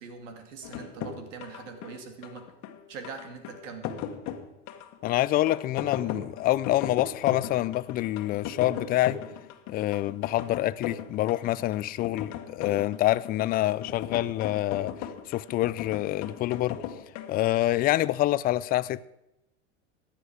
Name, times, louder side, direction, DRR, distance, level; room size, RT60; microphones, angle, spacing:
voice 1, 0.0-2.4 2.9-4.0, right 5 dB, 75° right, 2.5 m, -42 dB
sound 1, 0.6-17.4, left 9 dB, 50° left, 1.5 m, -38 dB
voice 2, 5.0-9.2 9.7-14.9 15.3-16.8 17.3-19.0, left 15 dB, 25° left, 0.3 m, -26 dB
15.5 x 10.0 x 4.9 m
hypercardioid pair, 105°, 37 cm